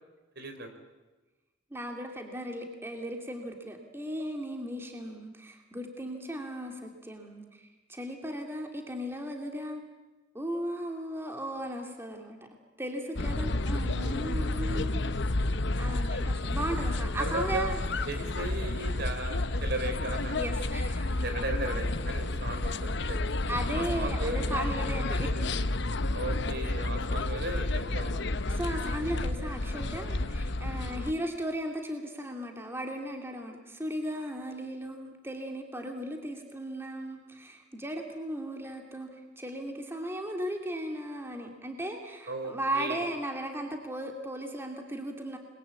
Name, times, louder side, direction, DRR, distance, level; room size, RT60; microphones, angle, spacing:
voice 1, 0.4-0.7 17.2-17.7 18.1-20.4 21.2-23.3 23.7-24.4 26.1-28.3 30.1-30.2 42.3-43.0, right 2 dB, 55° right, 7 dB, 3.9 m, -36 dB
voice 2, 1.7-9.8 10.3-12.4 12.8-15.1 15.8-17.8 20.3-21.2 23.5-25.3 28.5-45.4, right 1 dB, 10° right, 3 dB, 2.7 m, -36 dB
sound 1, 13.2-31.1, left 2 dB, 65° left, 1.0 m, -31 dB
29.0 x 22.0 x 8.4 m, 1.2 s
head